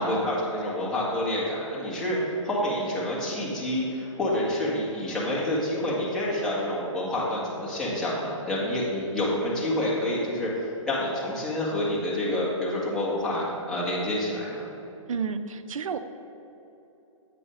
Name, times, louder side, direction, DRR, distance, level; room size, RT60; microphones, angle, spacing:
voice 1, 0.0-14.6, left 1 dB, 5° left, -9 dB, 1.8 m, -28 dB
voice 2, 15.1-16.0, right 6 dB, 75° right, 9 dB, 0.6 m, -30 dB
8.5 x 4.8 x 5.0 m, 3.0 s
hypercardioid pair, 145°, 17 cm